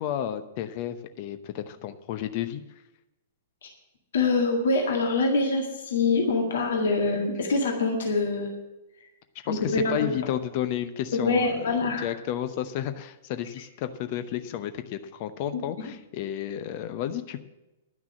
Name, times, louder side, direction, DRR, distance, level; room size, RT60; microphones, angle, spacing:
voice 1, 0.0-2.6 9.4-17.4, left 11 dB, 40° left, 11 dB, 0.8 m, -32 dB
voice 2, 4.1-8.6 9.5-10.1 11.1-12.1 15.5-15.9, left 3 dB, 60° left, 1 dB, 1.8 m, -25 dB
11.0 x 6.0 x 8.6 m, 1.0 s
figure-of-eight pair, 110°, 0 cm